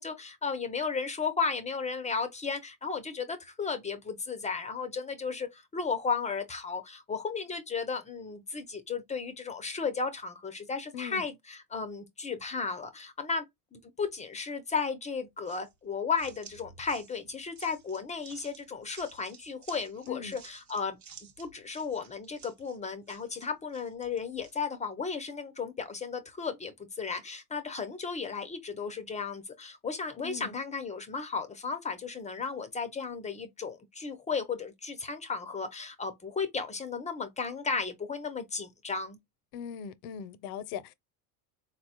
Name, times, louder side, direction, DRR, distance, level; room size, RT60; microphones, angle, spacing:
voice 1, 0.0-13.4 13.7-21.0 21.4-39.2, left 5 dB, 20° left, 0.4 m, -34 dB
voice 2, 10.9-11.3 20.1-20.4 30.2-30.6 39.5-40.9, left 8 dB, 80° left, 0.6 m, -40 dB
sound 1, 15.5-24.6, right 7 dB, 40° right, 0.8 m, -54 dB
4.1 x 2.0 x 2.7 m
cardioid pair, 125°, 42 cm